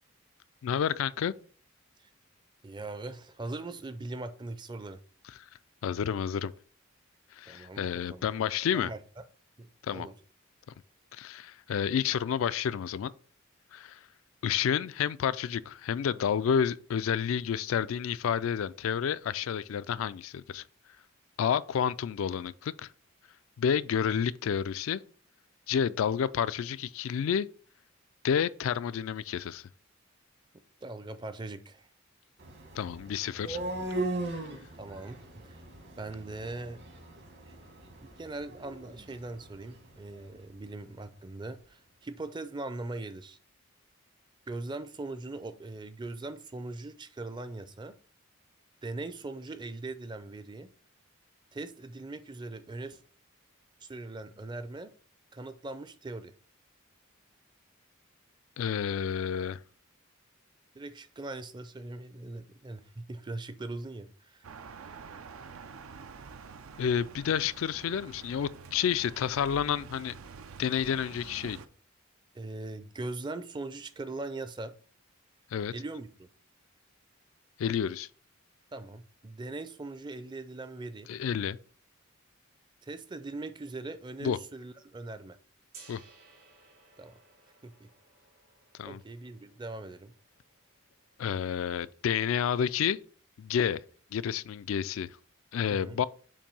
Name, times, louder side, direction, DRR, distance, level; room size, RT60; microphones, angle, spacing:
voice 1, 0.6-1.3 5.8-6.5 7.3-8.9 9.8-10.1 11.1-13.1 13.7-14.0 14.4-20.6 21.4-22.9 23.6-25.0 25.7-27.5 28.2-29.7 32.7-33.6 34.3-34.4 58.6-59.6 66.8-70.1 70.6-71.6 75.5-75.7 77.6-78.1 81.1-81.6 84.2-84.4 85.9-86.0 88.8-89.0 91.2-93.0 93.4-93.8 94.1-95.1 95.5-96.0, left 8 dB, 70° left, 0.3 m, -30 dB
voice 2, 2.6-5.0 7.5-8.3 8.7-9.0 9.6-10.1 30.8-31.9 34.8-35.6 36.0-36.8 37.5-37.6 38.2-43.4 44.5-47.9 48.8-50.7 51.5-53.0 53.8-54.9 55.3-56.3 60.7-64.4 72.3-74.7 75.7-76.3 78.7-81.1 82.8-85.4 87.0-87.2 87.6-87.9 88.8-90.1 95.7-96.0, right 2 dB, 20° right, 0.4 m, -40 dB
sound 1, 32.4-40.3, right 2 dB, 55° right, 1.2 m, -39 dB
sound 2, 64.4-71.7, right 5 dB, 85° right, 0.6 m, -47 dB
Gong, 85.7-91.6, right 4 dB, 70° right, 2.9 m, -59 dB
7.3 x 2.6 x 5.4 m
head